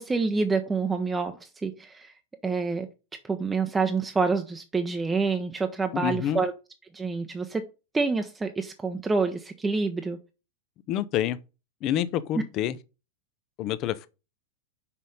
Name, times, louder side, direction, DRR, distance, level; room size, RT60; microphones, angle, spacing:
voice 1, 0.0-2.1 2.4-2.9 3.2-6.5 6.9-7.6 7.9-10.2, right 4 dB, 10° right, 0.7 m, -27 dB
voice 2, 5.9-6.4 10.9-11.4 11.8-12.8 13.6-14.1, left 11 dB, 35° left, 0.6 m, -27 dB
5.8 x 5.2 x 5.3 m
figure-of-eight pair, 90°, 0 cm